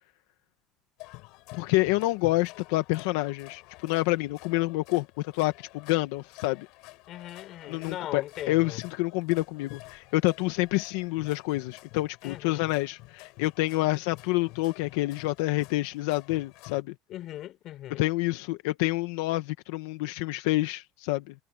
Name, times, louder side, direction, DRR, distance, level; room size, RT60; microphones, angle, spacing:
sound 1, 1.0-16.8, left 23 dB, 65° left, 7.8 m, -49 dB
voice 1, 1.5-6.7 7.7-16.9 17.9-21.3, left 19 dB, 85° left, 1.2 m, -28 dB
voice 2, 7.1-8.8 12.2-12.7 17.1-18.0, left 13 dB, 45° left, 4.2 m, -39 dB
cardioid pair, 155°, 0 cm